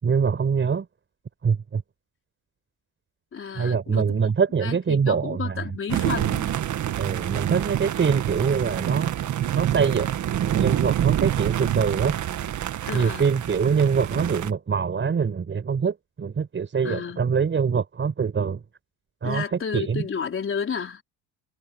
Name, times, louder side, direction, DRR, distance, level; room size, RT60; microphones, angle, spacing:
voice 1, 0.0-0.9 1.4-1.8 3.5-5.7 7.0-9.1 9.5-10.1 10.4-12.2 12.9-18.6 19.2-20.0, right 6 dB, 30° right, 5.7 m, -24 dB
voice 2, 3.3-4.3 4.6-6.5 12.8-13.3 16.8-17.2 19.2-21.0, left 6 dB, 30° left, 4.3 m, -32 dB
sound 1, 5.9-14.5, right 11 dB, 50° right, 1.6 m, -26 dB
cardioid pair, 120°, 39 cm